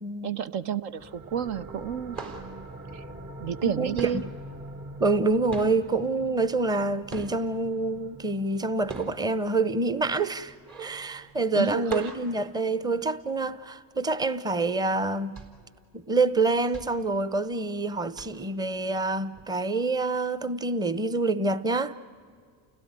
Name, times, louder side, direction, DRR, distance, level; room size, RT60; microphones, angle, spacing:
voice 1, 0.2-2.2 2.9-3.0 3.4-4.2 11.5-12.1, right 9 dB, 65° right, 1.0 m, -30 dB
sound 1, 1.0-12.3, right 1 dB, 25° right, 3.7 m, -45 dB
sound 2, 1.2-1.5 1.7-3.7 3.9-7.7 8.1-13.4 13.8-13.9 14.2-14.5 15.0-17.8 18.1-18.6 19.3-19.4, right 4 dB, 45° right, 4.2 m, -42 dB
voice 2, 3.6-4.0 5.0-15.4 15.9-21.9, right 3 dB, 10° right, 0.8 m, -27 dB
29.5 x 17.0 x 9.7 m
hypercardioid pair, 75°, 49 cm